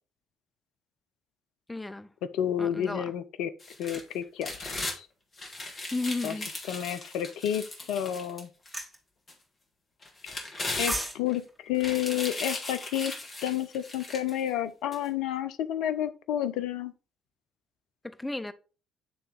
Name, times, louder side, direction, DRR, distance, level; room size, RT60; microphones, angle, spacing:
voice 1, 1.7-2.1 2.6-3.1 5.9-6.5 18.0-18.5, left 2 dB, 15° left, 0.6 m, -33 dB
voice 2, 2.3-3.5 3.8-5.1 6.2-6.3 6.7-8.5 10.2-10.3 10.8-13.1 13.4-16.9, left 11 dB, 65° left, 0.5 m, -30 dB
sound 1, 3.6-5.0 5.4-8.8 9.3-9.4 10.0-11.4 11.7-14.4 14.9-15.0, left 2 dB, 40° left, 1.8 m, -37 dB
sound 2, 8.7-9.0 10.6-11.2 11.5-11.7, right 1 dB, 5° right, 1.9 m, -32 dB
9.2 x 3.3 x 3.3 m
figure-of-eight pair, 45°, 0 cm